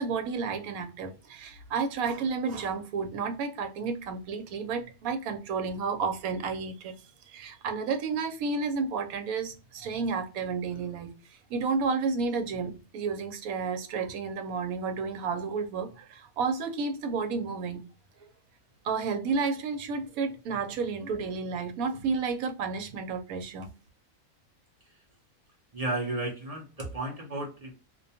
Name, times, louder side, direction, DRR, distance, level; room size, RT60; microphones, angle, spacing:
voice 1, 0.0-7.0 7.3-11.1 11.5-17.8 18.8-23.7, right 5 dB, 85° right, 1.1 m, -31 dB
voice 2, 25.7-27.7, right 2 dB, 40° right, 0.5 m, -33 dB
2.5 x 2.2 x 2.7 m
omnidirectional pair, 1.5 m